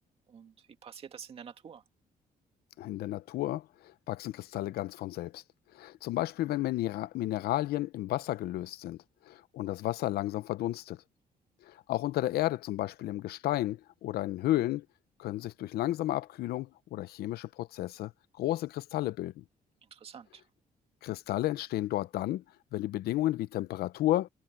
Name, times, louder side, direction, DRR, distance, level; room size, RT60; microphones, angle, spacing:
voice 1, 0.3-1.8 19.9-20.4, right 7 dB, 40° right, 2.1 m, -48 dB
voice 2, 2.8-5.4 5.7-9.0 9.3-11.0 11.6-14.9 15.2-18.1 18.4-19.4 21.0-22.4 22.7-24.3, left 15 dB, 85° left, 0.7 m, -32 dB
cardioid pair, 175°, 16 cm